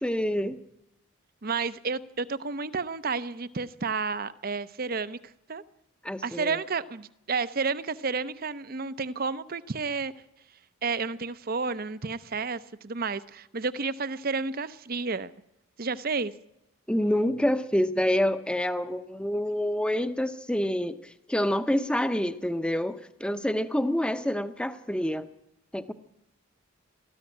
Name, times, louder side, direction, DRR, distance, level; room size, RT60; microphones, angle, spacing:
voice 1, 0.0-0.6 6.0-6.6 16.9-25.3 25.7-25.9, left 1 dB, 5° left, 10 dB, 0.8 m, -27 dB
voice 2, 1.4-5.2 5.5-5.6 6.2-10.1 10.8-15.3 15.8-16.3, right 4 dB, 45° right, 15 dB, 0.7 m, -31 dB
19.5 x 14.0 x 9.9 m, 0.84 s
head